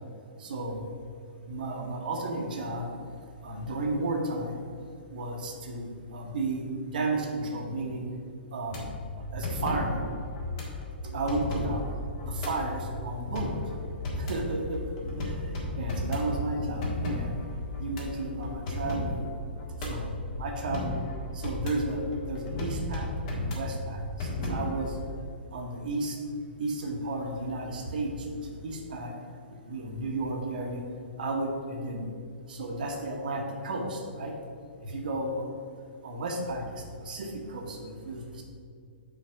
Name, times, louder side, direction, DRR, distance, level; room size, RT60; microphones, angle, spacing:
voice 1, 0.4-0.8 1.5-2.9 3.4-4.6 5.1-6.6 6.9-8.0 8.5-9.0 9.3-10.0 11.1-11.8 12.2-13.5 14.1-15.3 15.8-17.4 17.8-19.3 19.9-20.1 20.4-20.9 21.3-24.9 25.5-26.2 26.6-29.1 29.7-30.8 31.2-32.1 32.5-34.3 34.8-35.4 36.0-38.4, right 2 dB, 50° right, 1 dB, 1.1 m, -33 dB
sound 1, 8.7-25.0, left 1 dB, 40° left, 1.6 m, -34 dB
5.8 x 4.5 x 6.2 m, 2.3 s
figure-of-eight pair, 115°, 6 cm